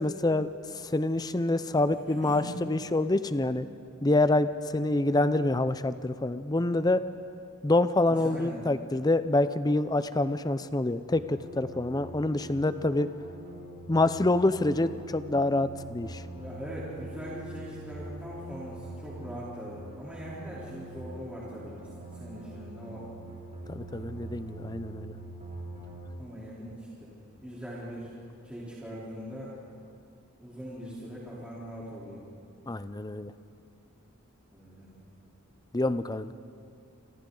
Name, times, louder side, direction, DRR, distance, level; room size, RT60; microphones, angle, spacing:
voice 1, 0.0-3.7 4.0-7.0 7.6-13.1 13.9-16.2 23.7-25.1 32.7-33.3 35.7-36.3, left 2 dB, 15° left, 12 dB, 0.5 m, -26 dB
voice 2, 1.7-2.5 8.1-8.6 16.3-23.1 26.2-27.1 27.4-28.1 28.4-29.5 30.3-32.2 34.5-34.9, equal, 5° right, -9 dB, 3.6 m, -41 dB
sound 1, 11.1-26.1, right 2 dB, 35° right, 4.2 m, -44 dB
29.0 x 25.5 x 3.9 m, 2.5 s
head